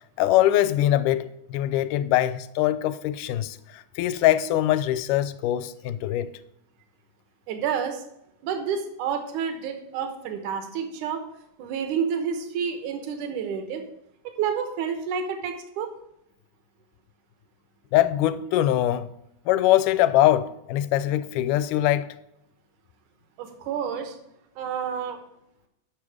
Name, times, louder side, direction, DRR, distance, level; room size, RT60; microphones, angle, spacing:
voice 1, 0.2-6.4 17.9-19.1 19.5-22.1, left 13 dB, 85° left, 2.1 m, -22 dB
voice 2, 7.5-8.0 8.4-11.2 11.6-13.8 14.2-15.9 23.4-24.2 24.6-25.2, right 7 dB, 75° right, 2.5 m, -29 dB
9.4 x 6.1 x 4.7 m
omnidirectional pair, 3.7 m